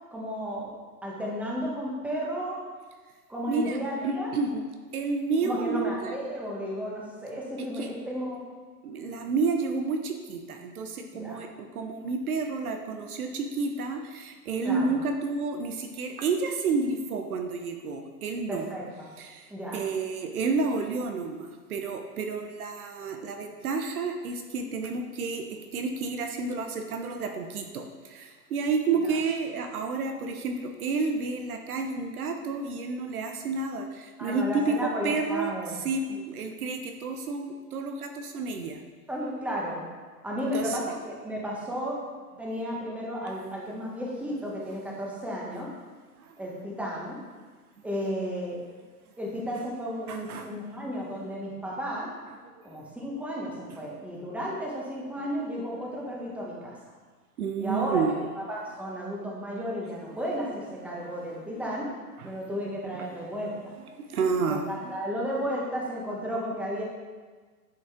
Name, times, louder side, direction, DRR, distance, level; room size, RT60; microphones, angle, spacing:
voice 1, 0.1-0.7 1.0-2.6 3.3-4.3 5.4-8.4 11.1-11.4 14.6-14.9 18.5-19.1 19.5-19.8 29.0-29.2 34.2-35.8 39.1-39.9 40.2-42.0 42.4-45.7 46.4-47.2 47.8-48.6 49.2-52.1 52.6-56.8 57.6-58.0 58.3-61.9 62.2-63.6 64.5-66.8, equal, 5° right, -4 dB, 1.5 m, -33 dB
voice 2, 3.5-3.8 4.0-4.6 4.9-6.1 7.6-7.9 8.8-18.7 19.2-38.8 40.5-40.8 46.2-46.3 50.1-50.5 55.2-55.3 57.4-58.1 60.9-61.1 61.5-61.6 62.2-62.3 62.9-63.3 64.1-64.9, right 4 dB, 65° right, 5 dB, 1.0 m, -30 dB
10.0 x 5.1 x 3.6 m, 1.4 s
hypercardioid pair, 120°, 48 cm